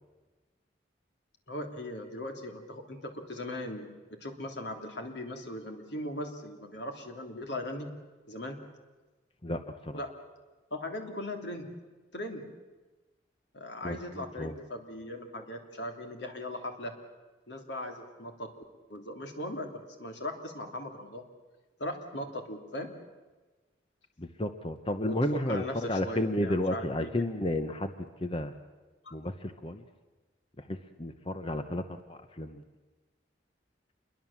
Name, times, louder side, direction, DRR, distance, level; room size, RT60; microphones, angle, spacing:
voice 1, 1.5-3.9 4.2-7.9 8.3-8.6 9.9-10.1 10.7-11.7 12.1-12.5 13.5-16.9 17.5-18.5 18.9-19.7 20.0-21.2 21.8-22.9 25.0-27.3 29.0-29.2, left 1 dB, 70° left, 3 dB, 3.1 m, -39 dB
voice 2, 9.4-10.0 13.8-14.5 24.2-27.9 28.2-28.5 29.1-29.8 30.6-32.6, left 1 dB, 30° left, 8 dB, 1.0 m, -32 dB
27.5 x 22.0 x 7.3 m, 1.2 s
head